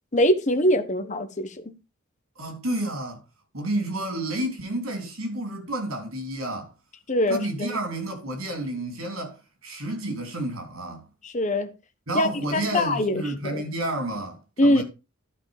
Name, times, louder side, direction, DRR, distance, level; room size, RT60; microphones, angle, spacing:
voice 1, 0.1-1.7 7.1-7.7 11.2-11.7 12.1-13.6 14.6-14.8, left 1 dB, 35° left, 1.2 m, -23 dB
voice 2, 2.4-3.2 3.5-6.7 7.3-11.1 12.1-14.8, right 1 dB, 85° right, 3.8 m, -30 dB
12.0 x 4.9 x 5.1 m
head